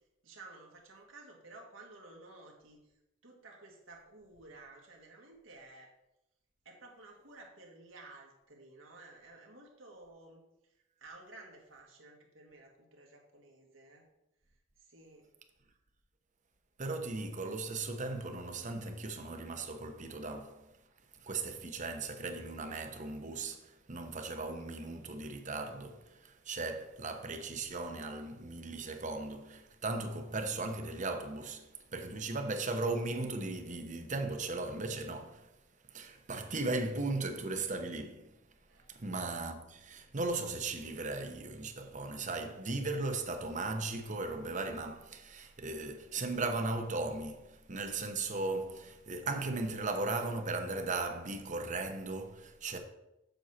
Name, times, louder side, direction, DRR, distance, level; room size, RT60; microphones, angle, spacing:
voice 1, 0.2-3.0 3.2-5.9 6.6-14.1 14.8-15.3 38.7-38.9, right 2 dB, 90° right, 2.0 m, -54 dB
voice 2, 16.8-20.7 21.2-35.5 35.9-38.3 38.9-52.8, right 3 dB, 40° right, 0.9 m, -37 dB
7.8 x 6.3 x 4.3 m
head